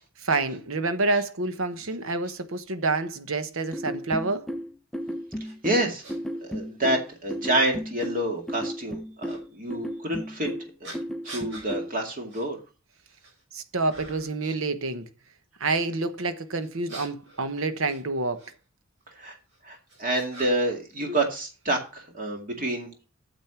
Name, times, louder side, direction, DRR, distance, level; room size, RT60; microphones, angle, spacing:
voice 1, 0.2-4.5 13.5-15.1 15.6-18.5, right 3 dB, 75° right, 1.1 m, -28 dB
sound 1, 3.7-12.0, equal, ahead, 0.5 m, -34 dB
voice 2, 5.4-6.0 6.4-10.5 10.8-10.9 11.2-12.6 19.2-19.4 19.6-23.0, right 1 dB, 40° right, 2.2 m, -28 dB
sound 2, 5.4-5.5 6.0-6.2 7.1-7.2 9.2-9.4 10.8-11.7 12.3-12.5 12.9-13.4 13.9-14.4 16.6-18.5 19.5-20.8 21.0-21.9, right 1 dB, 60° right, 5.2 m, -44 dB
9.1 x 7.4 x 5.9 m
head